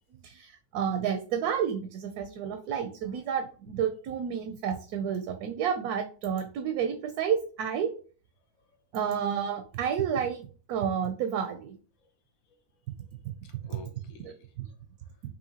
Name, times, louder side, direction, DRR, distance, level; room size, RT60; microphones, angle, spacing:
voice 1, 0.2-7.9 8.9-11.7 14.2-14.7, right 8 dB, 85° right, 6 dB, 1.1 m, -30 dB
voice 2, 13.2-15.2, left 5 dB, 70° left, 6 dB, 1.1 m, -53 dB
5.6 x 2.5 x 2.8 m, 0.39 s
omnidirectional pair, 1.6 m